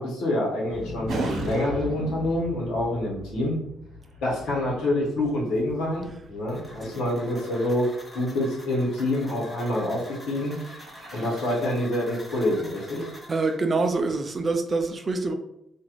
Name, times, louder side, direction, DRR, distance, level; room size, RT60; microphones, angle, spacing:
voice 1, 0.0-3.6 4.2-7.9 8.1-10.6 11.1-13.1, left 1 dB, 85° left, -5 dB, 1.1 m, -27 dB
Explosion, 0.7-6.7 7.0-7.1, left 2 dB, 65° left, 0.4 m, -41 dB
sound 1, 1.1-2.7 4.1-8.4 9.2-9.5 9.8-11.5, right 2 dB, 70° right, 0.7 m, -38 dB
sound 2, 6.5-13.6, left 1 dB, 10° left, 0.8 m, -45 dB
voice 2, 13.3-15.3, right 3 dB, 35° right, 5 dB, 0.3 m, -25 dB
2.5 x 2.4 x 3.0 m, 0.80 s
cardioid pair, 95°, 0 cm